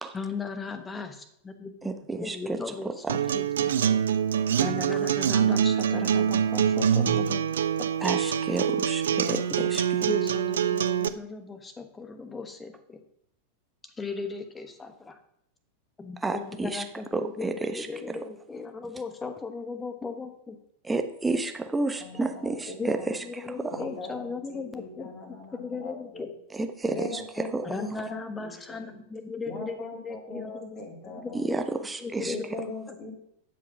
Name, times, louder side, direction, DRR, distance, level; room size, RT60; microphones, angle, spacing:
voice 1, 0.1-1.9 2.2-3.7 4.6-7.4 7.8-7.9 10.0-13.0 14.0-15.2 16.0-17.5 17.7-20.6 22.8-22.9 23.4-25.1 25.5-26.3 27.6-30.8 31.2-31.6 32.0-32.5, left 4 dB, 15° left, 8 dB, 1.2 m, -37 dB
voice 2, 1.8-3.2 8.0-9.8 16.2-16.8 17.1-18.2 20.8-23.8 26.5-27.7 31.3-32.3, right 3 dB, 10° right, 6 dB, 1.0 m, -31 dB
Acoustic guitar, 3.1-11.1, right 8 dB, 65° right, 0.5 m, -25 dB
voice 3, 22.0-23.1 23.7-26.3 26.9-28.9 29.4-31.5 32.2-33.1, left 3 dB, 30° left, 1 dB, 3.1 m, -41 dB
11.5 x 5.1 x 5.9 m, 0.74 s
figure-of-eight pair, 90°, 0 cm